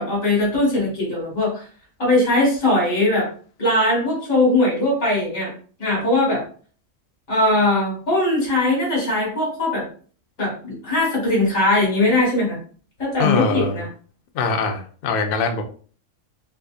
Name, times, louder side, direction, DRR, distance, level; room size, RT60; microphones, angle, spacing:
voice 1, 0.0-1.6 2.0-3.3 3.6-5.5 5.8-6.4 7.3-9.9 10.4-12.6 13.0-13.9, left 2 dB, 80° left, -4 dB, 2.5 m, -20 dB
voice 2, 13.2-13.8 14.3-15.6, left 4 dB, 60° left, 5 dB, 0.6 m, -22 dB
4.6 x 2.6 x 2.5 m, 0.43 s
omnidirectional pair, 1.4 m